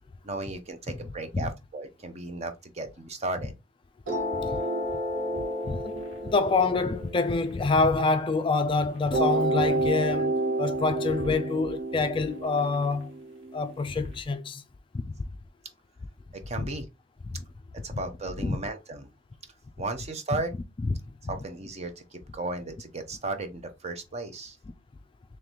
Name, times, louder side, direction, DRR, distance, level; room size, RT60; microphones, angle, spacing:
voice 1, 0.2-3.5 16.3-16.9 17.8-19.1 19.8-20.5 21.3-24.6, right 2 dB, 35° right, 0.7 m, -35 dB
sound 1, 4.1-8.4 9.1-14.1, right 1 dB, 70° right, 1.7 m, -30 dB
voice 2, 5.7-13.1 13.5-14.6 14.9-15.1 17.3-17.4 18.4-18.6 20.8-20.9, left 3 dB, 25° left, 0.3 m, -26 dB
3.8 x 3.1 x 3.0 m
head